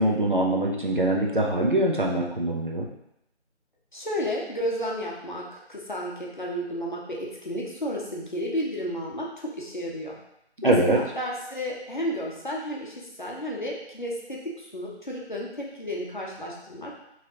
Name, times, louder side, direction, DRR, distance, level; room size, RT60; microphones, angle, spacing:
voice 1, 0.0-2.9 10.6-11.0, right 1 dB, 50° right, -1 dB, 0.6 m, -23 dB
voice 2, 3.9-5.4 5.7-9.3 9.6-10.2 10.6-16.9, equal, 45° left, -2 dB, 0.7 m, -32 dB
3.7 x 3.1 x 2.8 m, 0.82 s
figure-of-eight pair, 175°, 34 cm